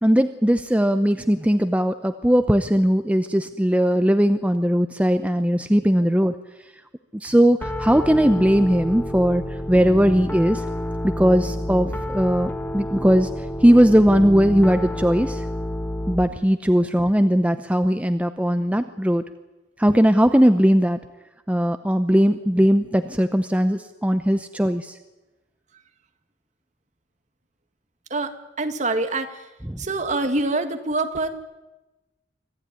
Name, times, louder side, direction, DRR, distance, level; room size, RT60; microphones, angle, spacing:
voice 1, 0.0-6.3 7.1-10.6 11.0-13.3 13.6-15.5 16.1-19.2 19.8-21.0 21.5-25.0 29.7-29.8, equal, 5° right, 9 dB, 0.7 m, -19 dB
Piano, 7.6-16.2, left 1 dB, 10° left, 1.3 m, -29 dB
voice 2, 28.1-29.5 29.8-31.3, right 2 dB, 40° right, 7 dB, 1.9 m, -25 dB
25.5 x 15.5 x 9.7 m, 1.1 s
head